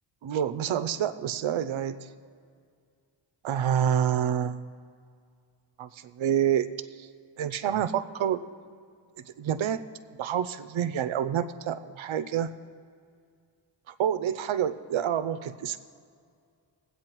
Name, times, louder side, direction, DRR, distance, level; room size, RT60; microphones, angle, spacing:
voice 1, 0.2-2.1 3.4-4.7 5.8-6.7 7.0-7.1 7.4-8.4 9.4-9.8 10.1-12.5 14.0-15.8, right 9 dB, 80° right, 12 dB, 0.6 m, -28 dB
22.0 x 8.4 x 3.0 m, 2.2 s
cardioid pair, 65°, 46 cm